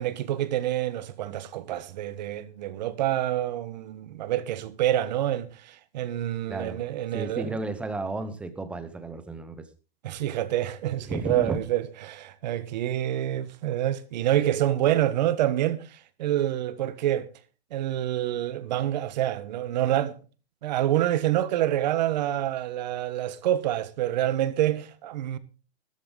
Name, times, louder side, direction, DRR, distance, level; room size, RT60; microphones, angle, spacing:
voice 1, 0.0-7.6 10.0-17.3 17.7-20.2 20.6-25.4, right 12 dB, 45° right, 1.3 m, -27 dB
voice 2, 6.5-6.8 7.1-9.6 11.1-11.6, right 3 dB, 5° right, 0.7 m, -33 dB
14.5 x 13.5 x 3.9 m
hypercardioid pair, 170°, 31 cm